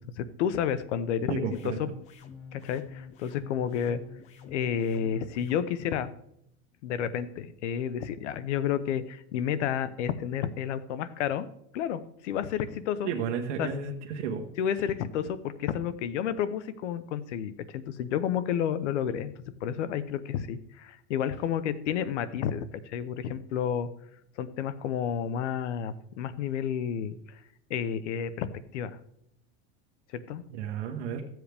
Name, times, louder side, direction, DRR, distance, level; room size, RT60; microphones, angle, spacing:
voice 1, 0.0-1.9 2.5-4.0 4.4-6.1 6.8-11.5 11.7-13.1 13.6-13.7 14.6-19.3 19.6-23.9 24.4-27.2 27.7-28.5 28.7-28.9 30.1-30.4, left 8 dB, 85° left, 14 dB, 0.9 m, -31 dB
sound 1, 1.2-5.6, left 6 dB, 20° left, 0.5 m, -47 dB
voice 2, 1.3-1.8 13.0-14.5 30.6-31.2, right 6 dB, 85° right, 2 dB, 1.4 m, -32 dB
14.5 x 7.7 x 3.5 m, 0.73 s
supercardioid pair, 170°, 35 cm